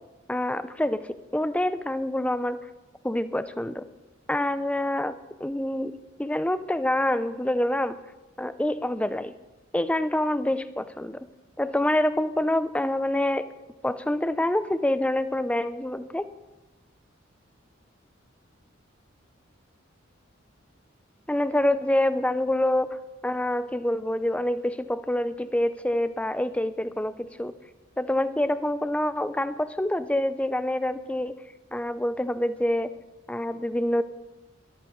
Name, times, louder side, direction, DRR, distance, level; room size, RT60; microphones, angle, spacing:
voice 1, 0.3-2.6 3.0-3.8 4.3-8.0 8.4-9.3 9.7-11.2 11.6-13.5 13.8-16.3 21.3-27.5 28.0-31.4 31.7-32.9 33.3-34.0, left 1 dB, 5° left, 12 dB, 0.5 m, -26 dB
22.5 x 13.5 x 3.1 m, 1.1 s
head